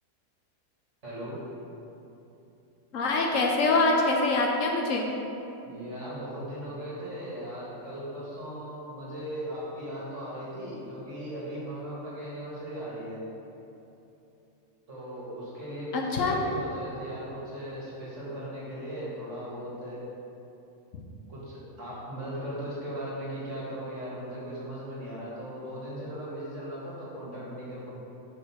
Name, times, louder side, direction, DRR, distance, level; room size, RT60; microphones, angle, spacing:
voice 1, 1.0-1.4 5.6-13.2 14.9-20.0 21.3-27.9, equal, 55° right, -7 dB, 2.1 m, -38 dB
voice 2, 2.9-5.1 15.9-16.4, left 3 dB, 70° left, 0 dB, 1.0 m, -24 dB
6.3 x 5.5 x 4.3 m, 2.9 s
omnidirectional pair, 1.5 m